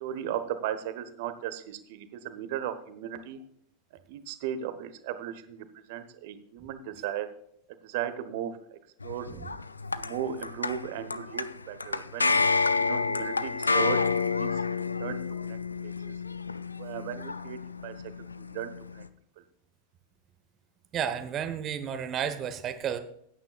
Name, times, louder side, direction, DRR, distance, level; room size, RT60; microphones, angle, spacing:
voice 1, 0.0-3.4 4.1-7.3 7.8-8.6 9.0-9.3 10.0-12.4 12.7-14.0 14.3-14.5 14.8-15.2 15.5-16.1 16.8-17.9 18.4-19.0, right 10 dB, 50° right, 11 dB, 1.2 m, -36 dB
sound 1, 9.0-19.1, left 4 dB, 80° left, 0.5 m, -29 dB
voice 2, 20.9-23.0, right 8 dB, 30° right, 10 dB, 1.2 m, -32 dB
17.0 x 9.5 x 2.4 m, 0.71 s
figure-of-eight pair, 90°, 0 cm